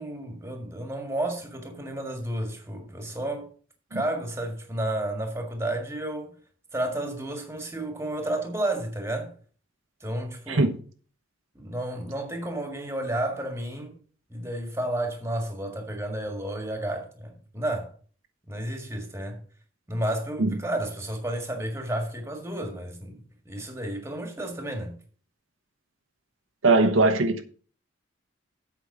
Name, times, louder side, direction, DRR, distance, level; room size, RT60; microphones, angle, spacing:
voice 1, 0.0-3.5 3.9-6.3 6.7-9.3 10.0-10.7 11.5-14.0 14.3-17.9 18.5-19.4 19.9-23.2 23.4-25.0, right 1 dB, 15° right, 1.7 m, -31 dB
voice 2, 26.6-27.4, right 3 dB, 75° right, 1.0 m, -20 dB
8.2 x 5.4 x 6.6 m
head